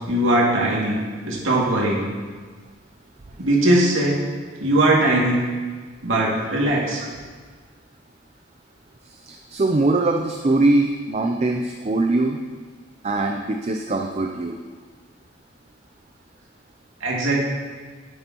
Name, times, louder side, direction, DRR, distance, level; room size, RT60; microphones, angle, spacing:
voice 1, 0.1-1.0 1.2-2.0 3.4-4.2 4.6-5.4 6.0-7.0 17.0-17.4, right 1 dB, 85° right, -4 dB, 2.3 m, -20 dB
voice 2, 9.0-12.4 13.0-14.6, right 2 dB, 35° right, 3 dB, 0.5 m, -22 dB
10.5 x 8.7 x 3.0 m, 1.5 s
head